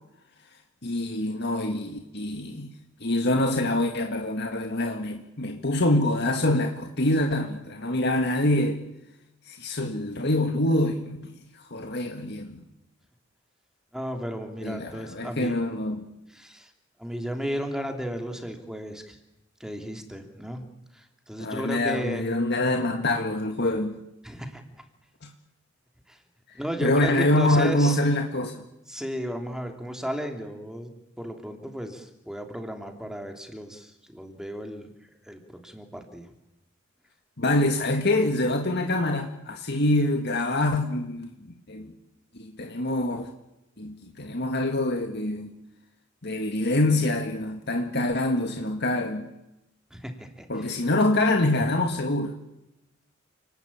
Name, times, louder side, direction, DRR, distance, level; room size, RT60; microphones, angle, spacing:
voice 1, 0.8-2.7 3.0-8.8 9.5-12.6 14.6-16.1 21.4-24.0 25.2-25.3 26.8-28.6 37.4-41.9 42.3-43.3 43.8-45.5 46.2-49.3 50.5-52.4, left 1 dB, 55° left, 4 dB, 2.0 m, -25 dB
voice 2, 13.9-15.6 16.3-16.7 17.0-19.2 19.6-20.6 20.9-22.2 24.2-24.6 26.1-26.2 26.5-28.0 28.9-30.9 31.2-36.3 49.9-50.7, equal, 5° right, 4 dB, 3.2 m, -34 dB
29.5 x 20.0 x 8.9 m, 0.89 s
head